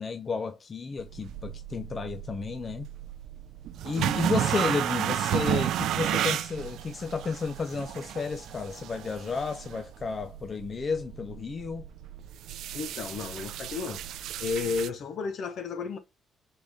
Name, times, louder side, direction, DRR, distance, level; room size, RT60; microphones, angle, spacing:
voice 1, 0.0-2.9 3.8-11.8, left 5 dB, 40° left, 0.5 m, -32 dB
sound 1, 1.0-14.9, right 11 dB, 80° right, 0.3 m, -33 dB
voice 2, 12.7-14.0 14.4-16.0, left 5 dB, 65° left, 1.0 m, -32 dB
3.9 x 3.8 x 3.4 m
cardioid pair, 90°, 0 cm